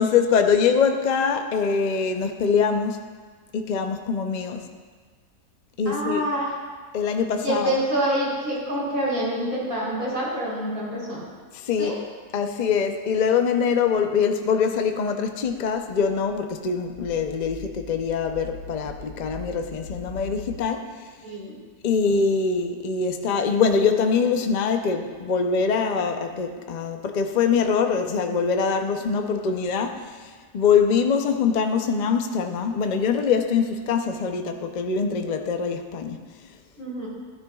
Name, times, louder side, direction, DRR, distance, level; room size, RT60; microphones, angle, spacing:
voice 1, 0.0-3.0 3.5-4.7 5.8-6.2 6.9-7.8 11.5-12.0 12.3-21.1 21.8-36.2, left 6 dB, 65° left, 5 dB, 0.4 m, -23 dB
voice 2, 5.9-6.5 7.4-11.2 11.8-12.0 21.2-21.5 36.8-37.1, right 1 dB, 65° right, -6 dB, 4.3 m, -26 dB
sound 1, 15.4-20.6, left 3 dB, 90° left, 1.4 m, -41 dB
16.0 x 10.5 x 2.3 m, 1.5 s
omnidirectional pair, 1.6 m